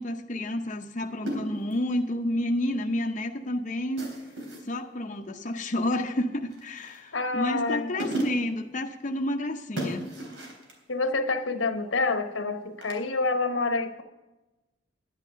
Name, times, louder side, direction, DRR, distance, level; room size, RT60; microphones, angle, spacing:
voice 1, 0.0-4.1 4.6-10.1, left 1 dB, 40° left, 3 dB, 0.7 m, -30 dB
sound 1, 1.3-1.9 4.0-4.7 6.5-7.1 7.7-7.8 8.0-8.6 9.8-10.8 12.8-13.0, right 1 dB, 90° right, 3.5 m, -34 dB
voice 2, 7.1-7.9 10.9-14.0, left 3 dB, 85° left, 7 dB, 1.1 m, -27 dB
11.0 x 10.5 x 5.7 m, 1.1 s
head